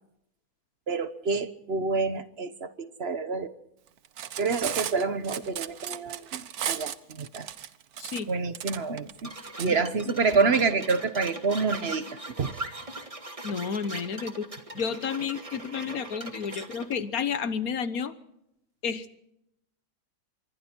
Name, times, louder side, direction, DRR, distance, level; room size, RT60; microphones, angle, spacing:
voice 1, 0.9-3.5 4.4-7.5 8.3-9.3 9.6-12.5 16.5-16.6, right 4 dB, 45° right, 12 dB, 1.2 m, -28 dB
Cutlery silverware, 4.0-9.7, right 10 dB, 70° right, 1.4 m, -35 dB
sound 1, 9.2-17.0, right 2 dB, 20° right, 1.8 m, -40 dB
voice 2, 13.4-14.5 14.7-18.1 18.8-19.2, left 6 dB, 65° left, 13 dB, 1.6 m, -31 dB
26.0 x 23.0 x 4.5 m, 0.83 s
omnidirectional pair, 1.7 m